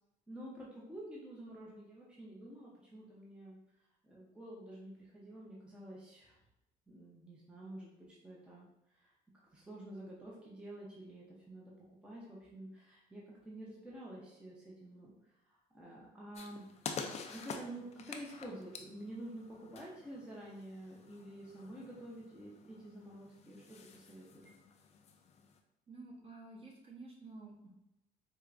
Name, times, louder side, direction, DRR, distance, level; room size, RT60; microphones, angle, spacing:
voice 1, 0.3-6.4 6.9-9.1 9.5-16.7 17.3-24.5, right 1 dB, 5° right, -5 dB, 0.7 m, -49 dB
sound 1, 16.3-25.6, left 5 dB, 40° left, 0.4 m, -49 dB
voice 2, 25.9-27.7, right 3 dB, 35° right, -4 dB, 1.1 m, -51 dB
4.5 x 2.2 x 2.5 m, 0.85 s
cardioid pair, 110°, 17 cm